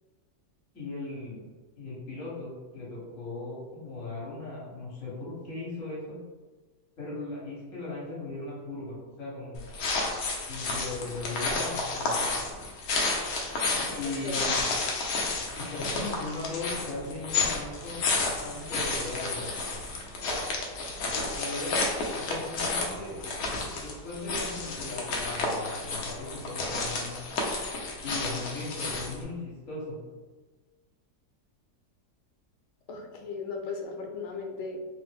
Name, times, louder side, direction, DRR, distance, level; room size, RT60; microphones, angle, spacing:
voice 1, 0.7-1.4 1.8-6.2 7.0-9.6 10.5-12.3 13.9-14.7 15.5-18.0 18.4-19.5 21.3-21.8 22.1-23.2 23.7-27.2 28.0-30.0, left 2 dB, 55° left, -7 dB, 1.5 m, -38 dB
sound 1, 9.6-29.2, left 3 dB, 70° left, 1.0 m, -31 dB
voice 2, 32.9-34.8, left 4 dB, 90° left, 2 dB, 1.2 m, -36 dB
3.4 x 2.0 x 3.4 m, 1.3 s
omnidirectional pair, 1.7 m